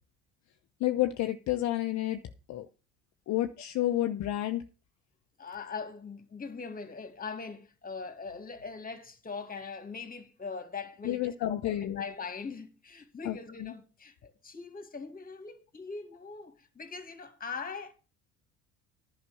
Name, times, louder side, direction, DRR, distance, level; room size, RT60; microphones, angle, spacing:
voice 1, 0.8-2.2 2.5-2.7 3.3-4.6 11.0-12.0 13.3-13.4, left 14 dB, 50° left, 0.9 m, -30 dB
voice 2, 5.4-17.9, left 5 dB, 25° left, 2.4 m, -41 dB
11.0 x 6.0 x 7.1 m
hypercardioid pair, 70°, 35 cm